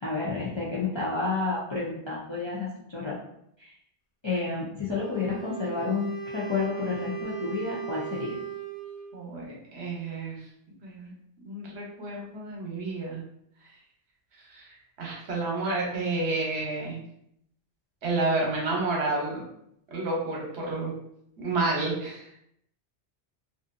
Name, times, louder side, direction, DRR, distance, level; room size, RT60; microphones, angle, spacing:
voice 1, 0.0-3.1 3.6-3.7 4.2-8.4, left 4 dB, 35° left, -7 dB, 0.4 m, -30 dB
Wind instrument woodwind instrument, 4.9-9.2, right 7 dB, 70° left, 0.9 m, -37 dB
voice 2, 9.1-10.4 10.8-11.1 11.4-13.2 14.5-14.6 15.0-17.0 18.0-19.4 19.9-21.0 21.4-22.2, right 2 dB, 75° right, -2 dB, 1.1 m, -30 dB
2.6 x 2.5 x 2.4 m, 0.73 s
omnidirectional pair, 1.1 m